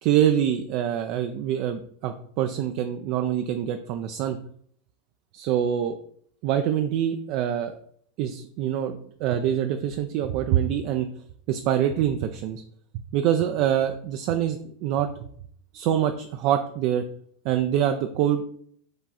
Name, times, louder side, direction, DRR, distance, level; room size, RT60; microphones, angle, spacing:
voice 1, 0.0-4.4 5.3-6.0 6.4-7.8 8.2-11.1 11.5-12.6 13.1-15.1 15.7-17.0 17.4-18.4, right 10 dB, 55° right, 7 dB, 0.3 m, -25 dB
4.7 x 2.4 x 4.1 m, 0.63 s
hypercardioid pair, 95°, 0 cm